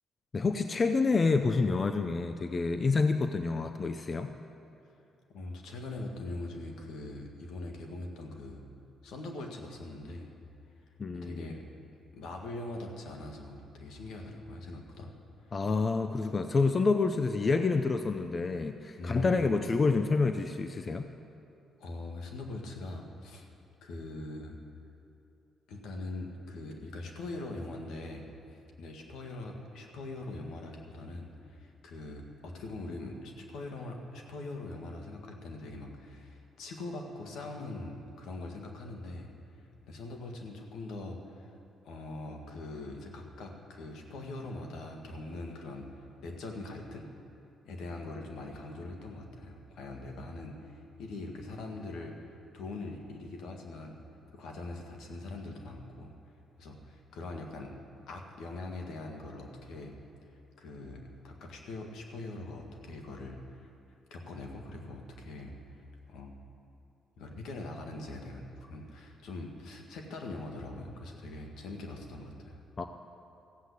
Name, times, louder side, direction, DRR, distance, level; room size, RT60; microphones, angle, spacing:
voice 1, 0.3-4.3 11.0-11.6 15.5-21.1 72.8-72.9, left 4 dB, 35° left, 8 dB, 0.6 m, -28 dB
voice 2, 5.3-8.6 9.0-10.3 11.1-11.6 12.1-15.1 15.5-15.6 16.2-16.4 19.0-19.4 21.8-23.5 23.8-24.6 25.7-39.3 39.6-41.6 41.8-47.1 47.6-54.0 54.3-56.1 56.6-57.7 58.1-59.9 60.6-63.7 64.1-65.5 66.1-66.4 67.2-72.6, left 2 dB, 80° left, 2 dB, 1.8 m, -42 dB
15.0 x 7.9 x 8.3 m, 2.7 s
cardioid pair, 90°, 0 cm